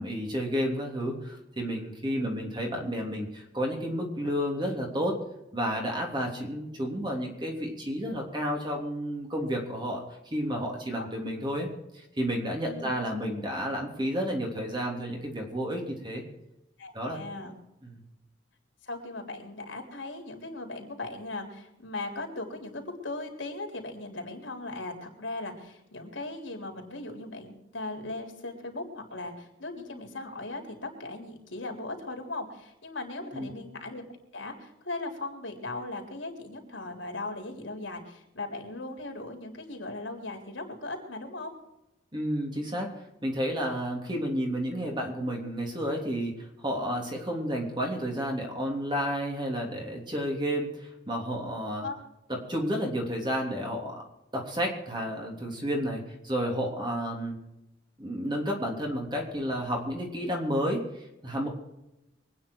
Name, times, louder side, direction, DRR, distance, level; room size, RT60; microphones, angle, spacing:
voice 1, 0.0-5.2 5.5-11.7 11.9-16.2 16.9-17.2 17.8-18.0 33.2-33.5 42.1-42.9 43.2-51.9 52.3-54.0 54.3-57.4 58.0-61.5, equal, 25° right, 0 dB, 3.3 m, -31 dB
voice 2, 12.6-13.0 16.8-17.6 18.8-34.0 34.3-41.5 51.8-51.9, left 2 dB, 75° left, 2 dB, 3.9 m, -38 dB
24.5 x 9.7 x 4.7 m, 0.92 s
head